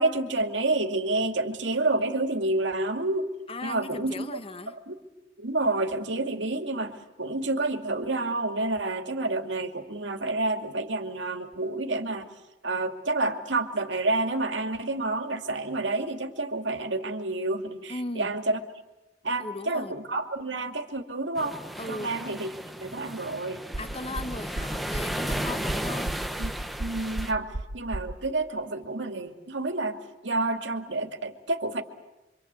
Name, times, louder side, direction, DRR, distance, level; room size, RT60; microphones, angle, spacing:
voice 1, 0.0-3.3 3.6-4.3 4.9-5.0 5.4-12.3 12.6-18.6 19.2-21.6 21.9-22.5 22.8-23.6 26.4-26.5 26.8-30.0 30.2-31.8, right 2 dB, 80° right, 6 dB, 2.5 m, -29 dB
voice 2, 3.5-4.8 17.9-18.3 19.4-19.9 21.8-22.1 23.8-26.1, left 2 dB, 30° left, 10 dB, 1.2 m, -37 dB
sound 1, 21.4-27.3, right 1 dB, ahead, 1.1 m, -34 dB
sound 2, 23.7-28.1, right 1 dB, 65° right, 1.3 m, -34 dB
27.5 x 25.5 x 8.3 m, 1.0 s
head